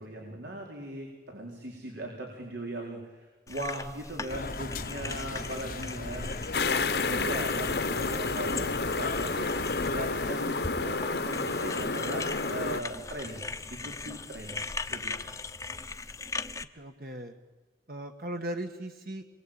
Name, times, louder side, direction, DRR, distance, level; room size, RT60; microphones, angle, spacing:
voice 1, 0.0-6.3 6.7-15.3, right 1 dB, 85° right, 0 dB, 4.3 m, -39 dB
sound 1, 3.5-16.6, left 3 dB, 20° left, 0.8 m, -40 dB
sound 2, 4.3-10.3, left 3 dB, 55° left, 1.0 m, -38 dB
sound 3, 6.5-12.8, left 3 dB, 70° left, 1.3 m, -30 dB
voice 2, 16.7-17.3 17.9-19.2, right 1 dB, 55° right, 5 dB, 1.5 m, -37 dB
27.5 x 22.5 x 9.0 m, 1.3 s
head